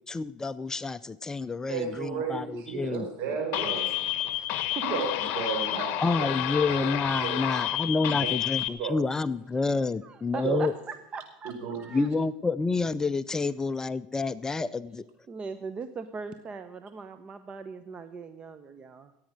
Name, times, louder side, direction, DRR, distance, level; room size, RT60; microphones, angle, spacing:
voice 1, 0.0-3.1 6.0-10.7 11.9-15.0, left 4 dB, 15° left, 14 dB, 0.4 m, -29 dB
voice 2, 1.7-3.9 4.8-6.4 6.7-7.5 8.2-8.3 8.8-8.9 10.4-10.7 11.5-12.0, right 5 dB, 60° right, 3 dB, 4.8 m, -33 dB
sound 1, 3.5-8.7, left 13 dB, 55° left, 1.1 m, -30 dB
sound 2, 3.6-4.6, right 8 dB, 75° right, 2.5 m, -51 dB
voice 3, 4.2-4.6 10.0-12.1 14.6-14.7 15.3-19.1, right 5 dB, 30° right, 10 dB, 0.8 m, -40 dB
16.0 x 8.8 x 6.4 m, 0.90 s
supercardioid pair, 110°, 4 cm